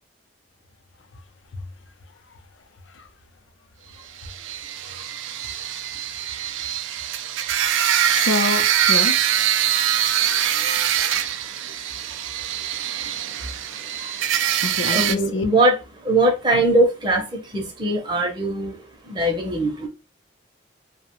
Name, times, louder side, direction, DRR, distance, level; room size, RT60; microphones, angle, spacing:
sound 1, 4.2-15.2, right 10 dB, 85° right, 0.3 m, -23 dB
voice 1, 5.5-6.0 7.7-9.3 14.0-14.1 14.6-15.5 16.5-16.6, left 3 dB, 80° left, 0.5 m, -29 dB
voice 2, 14.9-15.7 16.0-18.8 19.1-19.9, right 1 dB, 25° right, 0.6 m, -21 dB
2.7 x 2.1 x 2.9 m
head